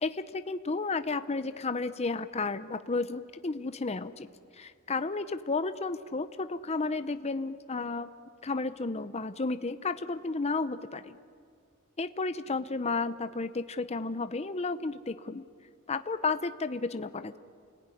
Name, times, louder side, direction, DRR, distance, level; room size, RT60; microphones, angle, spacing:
voice 1, 0.0-4.3 4.5-8.1 8.4-11.2 12.0-15.4 15.9-17.4, left 3 dB, 30° left, 11 dB, 0.7 m, -32 dB
29.5 x 20.0 x 9.9 m, 2.4 s
head